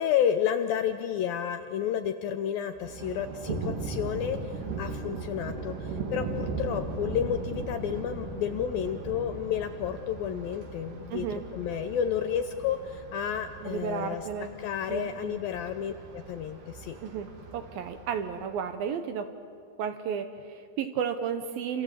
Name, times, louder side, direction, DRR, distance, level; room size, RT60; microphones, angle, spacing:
voice 1, 0.0-14.2 14.6-17.0, left 9 dB, 75° left, 8 dB, 2.2 m, -31 dB
Thunder, 2.8-18.7, right 3 dB, 55° right, 3.9 m, -38 dB
voice 2, 11.1-11.4 13.6-14.5 14.9-15.4 17.0-17.3 17.5-19.3 19.8-21.8, right 7 dB, 70° right, 8 dB, 2.5 m, -33 dB
28.5 x 27.5 x 7.6 m, 2.1 s
omnidirectional pair, 5.0 m